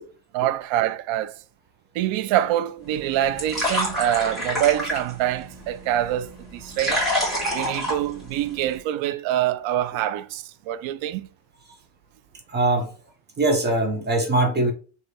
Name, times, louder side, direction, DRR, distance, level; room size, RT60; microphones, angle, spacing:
voice 1, 0.3-1.3 1.9-7.1 7.5-11.3, right 12 dB, 70° right, 0.5 m, -25 dB
sound 1, 2.8-8.8, left 1 dB, ahead, 1.6 m, -29 dB
voice 2, 12.5-12.9 13.4-14.7, right 2 dB, 20° right, 0.6 m, -22 dB
3.2 x 2.7 x 4.1 m
cardioid pair, 155°, 49 cm